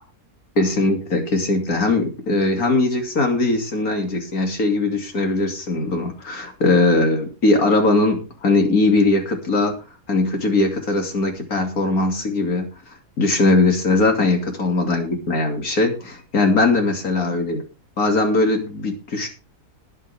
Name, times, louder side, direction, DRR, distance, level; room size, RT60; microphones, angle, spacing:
voice 1, 0.6-9.8 10.1-12.7 13.2-17.6 18.0-19.3, left 2 dB, 75° left, 3 dB, 3.0 m, -20 dB
21.0 x 7.4 x 3.4 m, 0.32 s
omnidirectional pair, 1.5 m